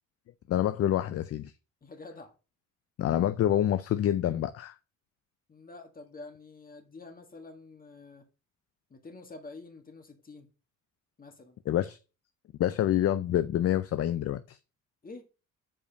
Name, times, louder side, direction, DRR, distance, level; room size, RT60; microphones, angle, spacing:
voice 1, 0.5-1.5 3.0-4.8 11.7-12.0 12.6-14.6, left 11 dB, 50° left, 0.5 m, -27 dB
voice 2, 1.8-2.3 5.5-8.2 8.9-10.5 11.2-11.6 15.0-15.2, left 3 dB, 30° left, 1.6 m, -47 dB
5.1 x 4.8 x 5.1 m
cardioid pair, 90°, 30 cm